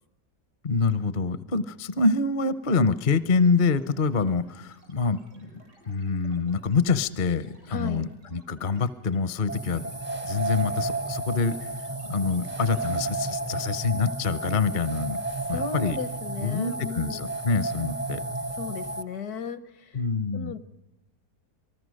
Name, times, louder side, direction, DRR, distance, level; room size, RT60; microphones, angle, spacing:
voice 1, 0.6-5.5 5.8-9.9 10.2-15.2 15.5-16.0 16.4-18.2 19.9-20.5, left 4 dB, 45° left, 15 dB, 0.7 m, -26 dB
sound 1, 3.3-13.8, right 1 dB, 90° right, 6.0 m, -56 dB
voice 2, 7.7-8.1 15.5-17.2 18.5-20.0 20.3-20.6, left 5 dB, 65° left, 15 dB, 1.4 m, -35 dB
sound 2, 9.5-19.0, right 2 dB, 15° right, 0.5 m, -32 dB
27.0 x 19.5 x 6.4 m, 1.0 s
omnidirectional pair, 1.8 m